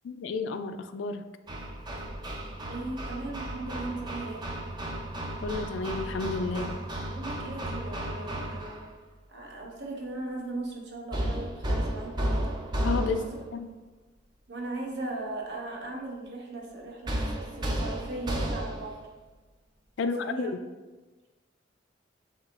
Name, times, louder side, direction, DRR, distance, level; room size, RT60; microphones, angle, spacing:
voice 1, 0.0-1.3 5.4-6.8 12.8-13.2 13.5-13.7 20.0-20.6, left 4 dB, 70° left, 9 dB, 0.3 m, -31 dB
Hammer, 1.5-8.9 11.1-13.5 17.1-19.0, right 1 dB, 20° right, 0.4 m, -33 dB
voice 2, 2.6-4.5 7.1-8.9 9.3-12.5 13.0-13.2 14.5-19.0 20.0-20.5, right 2 dB, 65° right, 0 dB, 0.9 m, -38 dB
7.3 x 2.9 x 2.4 m, 1.2 s
head